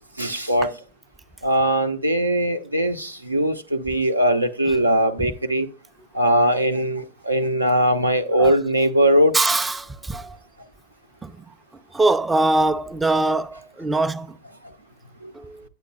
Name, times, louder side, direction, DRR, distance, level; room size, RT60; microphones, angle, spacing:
voice 1, 0.2-0.7 1.4-5.7 6.1-9.4 15.2-15.3, right 1 dB, 85° right, 0.6 m, -20 dB
voice 2, 9.3-10.4 11.2-11.3 11.9-14.4 15.3-15.6, right 2 dB, 10° right, 0.4 m, -22 dB
9.0 x 8.1 x 2.3 m
figure-of-eight pair, 90°, 0 cm